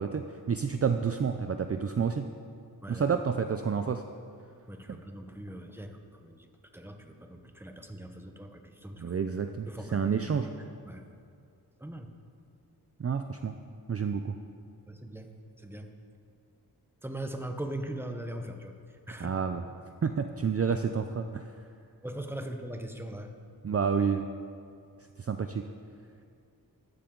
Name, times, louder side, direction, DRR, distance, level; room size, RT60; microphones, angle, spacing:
voice 1, 0.0-2.2 2.9-4.0 4.9-5.0 9.0-10.5 13.0-13.6 13.9-14.4 19.2-19.6 20.0-21.5 23.6-24.3 25.2-25.6, right 6 dB, 40° right, 7 dB, 0.5 m, -29 dB
voice 2, 2.8-3.2 4.7-6.5 6.7-9.2 9.7-10.1 10.9-11.0 11.8-12.1 14.9-15.3 15.6-15.9 17.0-18.7 19.1-19.3 22.0-23.3, right 1 dB, 5° right, 5 dB, 0.9 m, -40 dB
15.0 x 11.5 x 3.9 m, 2.3 s
wide cardioid pair, 105°, 39 cm